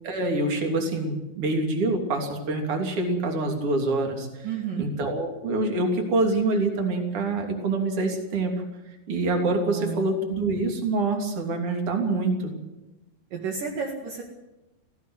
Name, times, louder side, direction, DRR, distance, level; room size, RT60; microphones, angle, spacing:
voice 1, 0.0-4.5 4.8-8.5 9.1-12.5, right 2 dB, 35° right, 3 dB, 3.7 m, -26 dB
voice 2, 4.4-4.9 9.7-10.1 13.3-14.2, right 6 dB, 60° right, 0 dB, 3.4 m, -31 dB
18.0 x 16.0 x 9.4 m, 0.99 s
omnidirectional pair, 4.7 m